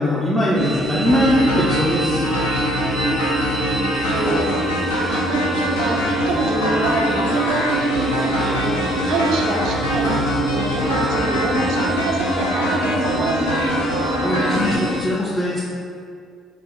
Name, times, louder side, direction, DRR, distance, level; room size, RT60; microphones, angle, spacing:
voice 1, 0.0-2.3 14.2-15.6, equal, 10° left, -7 dB, 0.6 m, -20 dB
sound 1, 0.5-15.0, right 1 dB, 50° left, 0.9 m, -25 dB
sound 2, 1.0-14.8, equal, 85° left, 0.4 m, -24 dB
voice 2, 3.6-4.8 5.1-10.2 10.5-13.4, right 3 dB, 60° right, 0 dB, 0.4 m, -26 dB
3.4 x 2.1 x 3.9 m, 2.2 s
hypercardioid pair, 50°, 0 cm